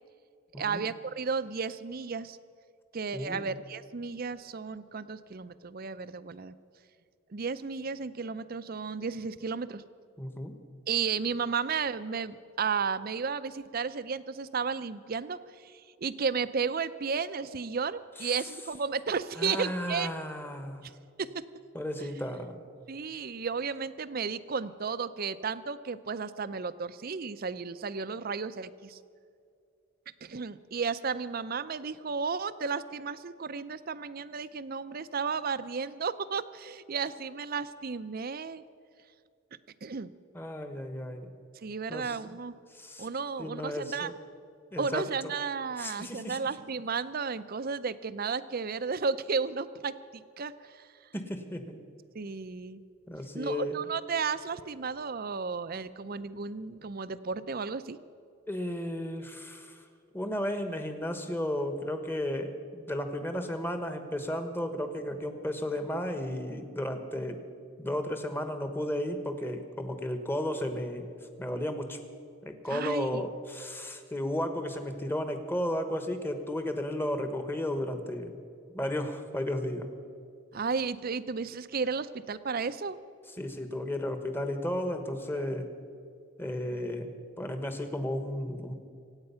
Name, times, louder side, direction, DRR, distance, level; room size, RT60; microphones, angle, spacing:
voice 1, 0.6-2.4 2.9-6.5 7.3-9.8 10.9-20.1 20.8-20.9 21.2-21.3 22.0-22.1 22.9-29.0 30.2-38.6 39.8-40.1 41.6-42.5 43.0-44.1 44.8-50.9 52.1-52.8 53.3-58.0 72.7-73.2 80.5-83.0, right 5 dB, 45° right, 13 dB, 0.5 m, -33 dB
voice 2, 3.1-3.5 10.2-10.5 18.2-18.3 19.4-20.8 21.7-22.6 40.3-41.3 41.9-42.4 42.7-43.1 43.4-44.1 44.7-45.0 45.8-46.5 51.1-51.8 53.1-53.8 58.5-59.8 60.1-67.4 67.8-71.1 71.4-72.0 72.4-78.3 78.7-79.9 83.4-85.7 86.4-87.1 87.4-88.7, left 1 dB, 10° left, 7 dB, 1.2 m, -34 dB
25.0 x 9.0 x 5.7 m, 2.3 s
head